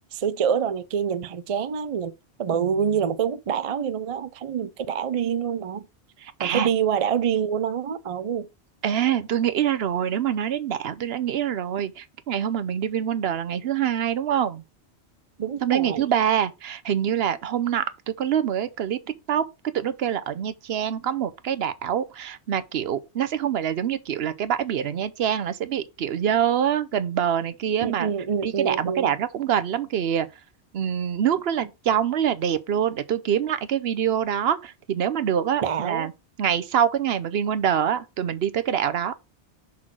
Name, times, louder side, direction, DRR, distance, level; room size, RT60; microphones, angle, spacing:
voice 1, 0.1-2.1 2.4-5.8 6.4-8.5 15.4-16.1 27.8-29.1 35.6-36.1, right 7 dB, 45° right, 0.4 m, -26 dB
voice 2, 2.5-3.0 6.2-6.7 8.8-14.6 15.6-19.0 19.3-19.4 19.7-28.1 28.4-30.3 30.7-36.1 36.4-39.1, right 9 dB, 65° right, 0.9 m, -25 dB
5.9 x 3.8 x 6.0 m
omnidirectional pair, 1.1 m